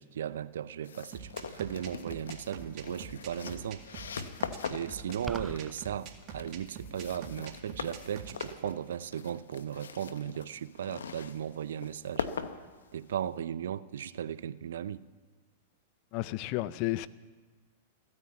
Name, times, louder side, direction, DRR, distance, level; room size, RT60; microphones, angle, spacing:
voice 1, 0.0-3.8 4.7-12.3 12.9-15.0, right 9 dB, 75° right, 17 dB, 0.5 m, -36 dB
sound 1, 0.8-13.4, left 6 dB, 85° left, 0.9 m, -42 dB
sound 2, 1.1-8.5, right 7 dB, 40° right, 2.0 m, -45 dB
sound 3, 5.3-5.7, right 2 dB, 5° right, 0.4 m, -40 dB
voice 2, 16.1-17.1, left 17 dB, 50° left, 17 dB, 0.6 m, -32 dB
15.0 x 9.6 x 8.7 m, 1.4 s
hypercardioid pair, 115°, 0 cm